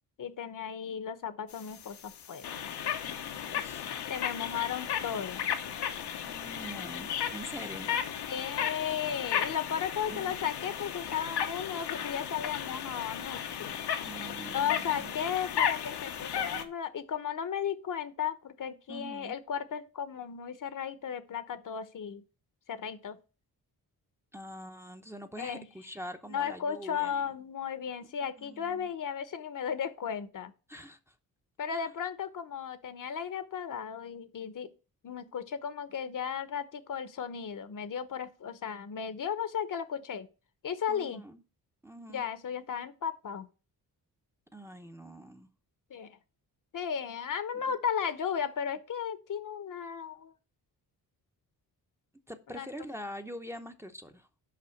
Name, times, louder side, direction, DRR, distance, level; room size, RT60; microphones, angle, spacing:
voice 1, 0.2-2.5 4.1-5.5 8.3-13.7 14.5-22.2 22.7-23.2 25.4-25.7 26.3-30.5 31.6-34.7 35.0-40.3 40.6-41.3 42.1-43.5 45.9-46.2 46.7-50.3 52.5-52.7, left 8 dB, 55° left, 0.9 m, -35 dB
sound 1, 1.5-16.6, left 9 dB, 85° left, 1.0 m, -35 dB
voice 2, 3.5-3.9 6.2-7.9 10.1-10.4 14.0-15.1 18.9-19.4 24.3-27.2 28.0-28.1 28.4-28.9 30.7-31.1 31.7-31.9 40.9-41.4 41.8-42.3 44.5-45.5 47.5-47.8 52.3-54.3, equal, 5° right, 0.7 m, -45 dB
5.9 x 5.4 x 6.4 m
cardioid pair, 95°, 39 cm